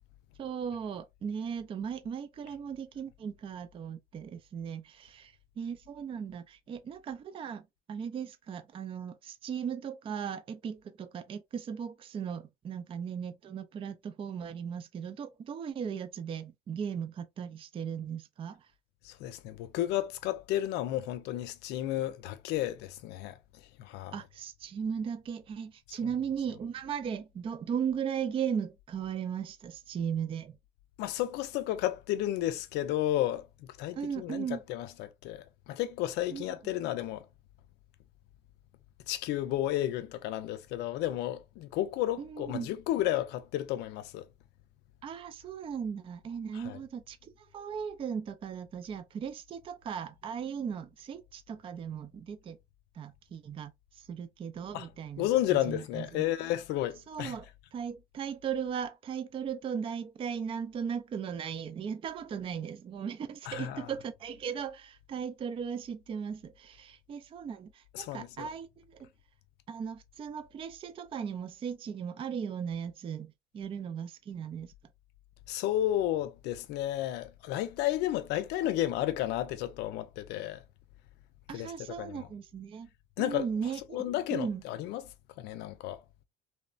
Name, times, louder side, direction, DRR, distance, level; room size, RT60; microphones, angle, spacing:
voice 1, 0.4-7.6 7.9-18.7 24.1-30.6 33.9-34.6 36.3-36.5 42.2-42.7 45.0-52.6 52.9-56.2 57.1-68.7 68.9-69.1 69.7-74.7 81.5-82.9 83.2-84.6, right 7 dB, 30° right, 0.3 m, -37 dB
voice 2, 19.0-23.4 23.8-24.1 25.9-26.0 31.0-37.3 39.1-44.3 46.5-46.8 54.7-54.9 55.2-57.3 63.5-63.9 67.9-68.5 75.5-80.6 81.5-81.7 82.0-82.3 83.2-83.5 83.9-85.0 85.4-86.0, left 13 dB, 90° left, 0.4 m, -32 dB
3.1 x 2.0 x 2.4 m
cardioid pair, 110°, 17 cm